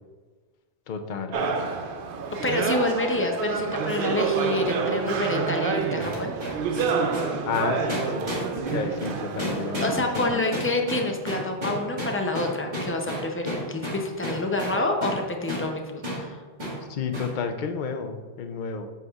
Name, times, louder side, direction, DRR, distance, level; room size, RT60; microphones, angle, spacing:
voice 1, 0.9-1.4 7.4-8.3 8.7-9.9 10.1-10.4 16.9-18.9, left 5 dB, 55° left, 6 dB, 0.7 m, -31 dB
sound 1, 1.3-10.0, right 5 dB, 60° right, 0.7 m, -28 dB
voice 2, 2.4-6.3 9.8-16.4, left 2 dB, 20° left, 2 dB, 0.4 m, -28 dB
sound 2, 6.0-15.2 15.5-15.7 16.0-16.2 16.6-16.8 17.1-17.3, equal, 45° right, 1.8 m, -32 dB
8.1 x 5.8 x 2.4 m, 1.5 s
omnidirectional pair, 1.1 m